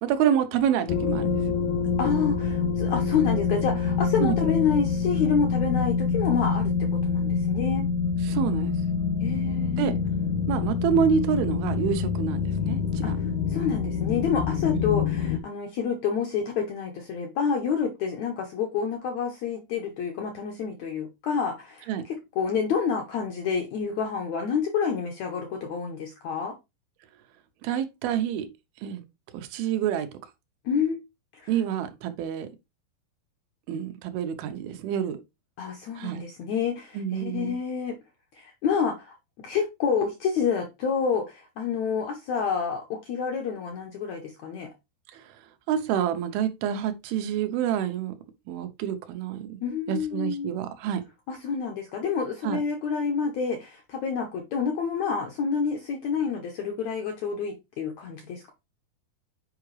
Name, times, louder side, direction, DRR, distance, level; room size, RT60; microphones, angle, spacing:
voice 1, 0.0-1.5 4.2-4.5 8.2-8.7 9.8-9.9 10.5-13.2 14.7-14.9 21.9-22.0 27.6-28.5 28.8-29.0 29.3-30.1 31.5-32.5 33.7-35.2 36.0-36.2 36.9-37.6 45.1-45.3 45.7-48.2 48.5-49.6 49.9-51.0 52.4-52.6, right 9 dB, 90° right, 2.7 m, -27 dB
sound 1, 0.9-15.4, left 6 dB, 90° left, 1.7 m, -26 dB
voice 2, 2.0-7.9 9.2-9.9 13.0-13.2 13.5-26.5 30.6-31.0 31.3-31.5 35.6-38.0 38.3-44.7 49.6-50.5 51.3-58.5, left 6 dB, 75° left, 1.7 m, -28 dB
7.7 x 4.7 x 3.2 m
omnidirectional pair, 4.3 m